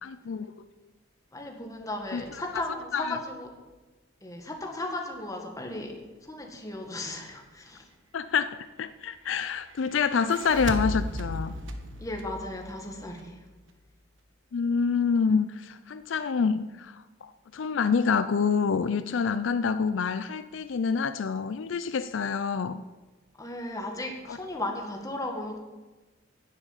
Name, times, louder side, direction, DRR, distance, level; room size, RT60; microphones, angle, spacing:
voice 1, 0.0-0.6 2.1-2.2 2.9-3.2 8.1-11.5 14.5-22.8 24.3-24.4, left 5 dB, 70° left, 12 dB, 0.4 m, -27 dB
voice 2, 1.3-3.5 4.2-7.9 12.0-13.4 23.4-25.6, left 1 dB, 15° left, 2 dB, 1.8 m, -36 dB
sound 1, 10.1-13.4, equal, 70° right, 1.2 m, -35 dB
10.5 x 7.3 x 8.9 m, 1.2 s
head